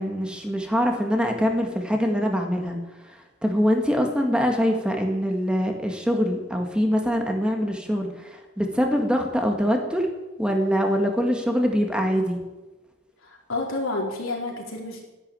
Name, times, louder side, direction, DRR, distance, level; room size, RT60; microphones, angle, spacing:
voice 1, 0.0-2.8 3.1-3.2 3.4-10.1 10.4-12.4, equal, 5° right, 3 dB, 1.8 m, -24 dB
voice 2, 13.2-15.0, left 2 dB, 75° left, 0 dB, 4.3 m, -30 dB
13.0 x 11.0 x 9.0 m, 1.1 s
head